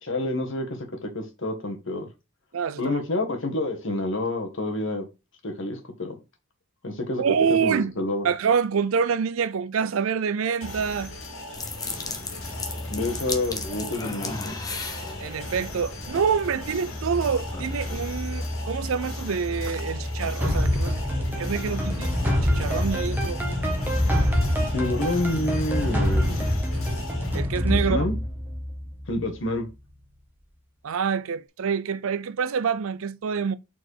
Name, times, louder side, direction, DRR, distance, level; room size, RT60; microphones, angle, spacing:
voice 1, 0.0-2.1 2.8-5.1 5.4-6.1 6.8-7.2 7.6-8.2 12.9-14.5 24.6-26.5 27.7-28.1 29.1-29.7, left 2 dB, 65° left, 1.6 m, -28 dB
voice 2, 2.5-3.0 7.2-7.9 8.2-11.1 15.2-23.4 27.3-28.1 30.8-33.6, right 6 dB, 80° right, 0.5 m, -26 dB
sound 1, 10.6-27.4, left 2 dB, 85° left, 2.3 m, -39 dB
sound 2, 11.5-20.5, left 2 dB, 20° left, 0.9 m, -34 dB
sound 3, 20.4-29.3, left 1 dB, 10° right, 1.2 m, -25 dB
4.6 x 4.3 x 4.7 m
head